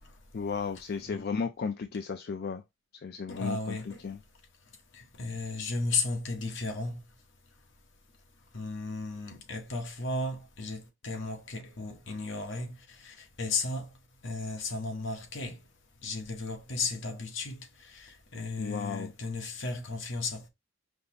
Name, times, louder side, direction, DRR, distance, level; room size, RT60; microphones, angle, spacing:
voice 1, 0.3-2.6 2.9-4.2 18.6-19.1, left 5 dB, 50° left, 0.4 m, -34 dB
voice 2, 3.3-4.0 4.7-7.1 8.5-13.9 14.2-15.6 16.0-20.5, left 3 dB, 70° left, 1.1 m, -35 dB
5.2 x 2.0 x 4.1 m
head